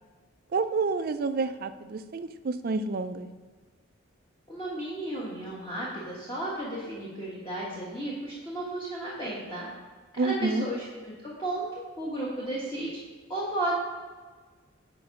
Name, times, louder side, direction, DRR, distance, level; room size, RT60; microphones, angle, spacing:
voice 1, 0.5-3.3 10.2-10.6, right 3 dB, 45° right, 10 dB, 0.4 m, -29 dB
voice 2, 4.5-9.7 10.2-10.8 11.2-11.7 12.0-13.0 13.3-13.8, right 1 dB, 20° left, -7 dB, 1.2 m, -33 dB
7.9 x 4.5 x 5.2 m, 1.4 s
head